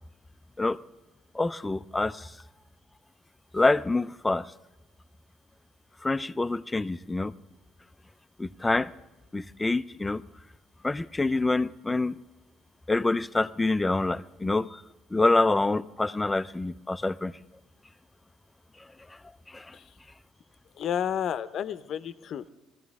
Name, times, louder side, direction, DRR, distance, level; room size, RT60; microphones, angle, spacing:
voice 1, 1.3-2.3 3.5-4.5 6.0-7.3 8.4-8.9 9.3-10.2 10.8-12.2 12.9-14.8 15.1-17.3 19.5-19.7, left 2 dB, 15° left, 0.4 m, -26 dB
voice 2, 20.8-22.5, left 9 dB, 55° left, 0.7 m, -31 dB
21.0 x 14.5 x 3.6 m
cardioid pair, 105°, 0 cm